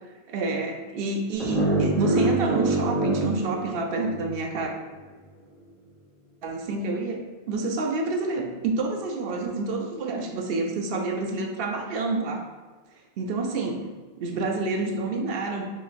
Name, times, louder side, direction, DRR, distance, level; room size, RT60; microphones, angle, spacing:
voice 1, 0.3-4.7 6.4-12.5 13.2-13.8 14.2-15.7, right 3 dB, 70° right, 3 dB, 0.7 m, -28 dB
sound 1, 1.4-4.5, right 2 dB, ahead, 0.8 m, -25 dB
4.0 x 3.0 x 2.4 m, 1.3 s
omnidirectional pair, 1.1 m